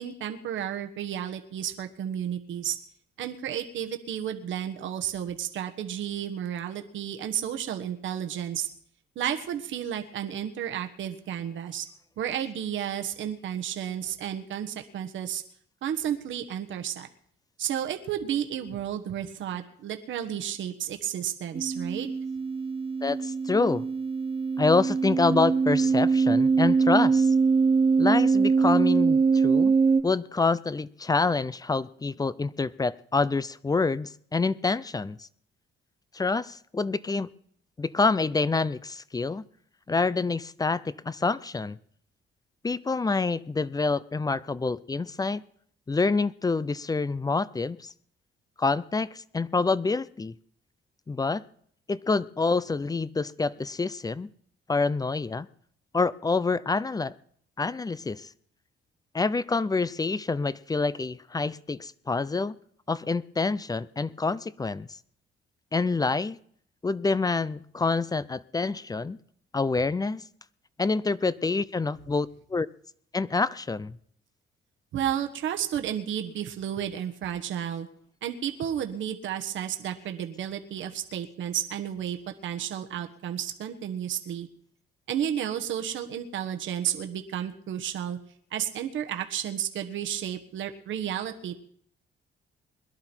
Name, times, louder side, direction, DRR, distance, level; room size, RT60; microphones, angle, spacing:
voice 1, 0.0-2.8 3.2-8.7 9.1-11.9 12.2-15.4 15.8-17.1 17.6-22.1 74.9-77.9 78.2-84.5 85.1-88.2 88.5-91.5, right 10 dB, 75° right, 5 dB, 1.4 m, -32 dB
sound 1, 21.5-30.0, right 5 dB, 30° right, 0.8 m, -23 dB
voice 2, 23.0-23.9 24.6-27.3 28.0-29.7 30.0-35.3 36.1-37.3 37.8-39.4 39.9-41.8 42.6-45.4 45.9-47.9 48.6-50.3 51.1-51.4 51.9-54.3 54.7-55.5 55.9-57.1 57.6-58.3 59.1-62.6 62.9-64.9 65.7-66.4 66.8-69.2 69.5-70.2 70.8-72.7 73.1-74.0, left 3 dB, 20° left, 18 dB, 0.5 m, -27 dB
21.5 x 11.5 x 4.5 m, 0.63 s
cardioid pair, 90°, 20 cm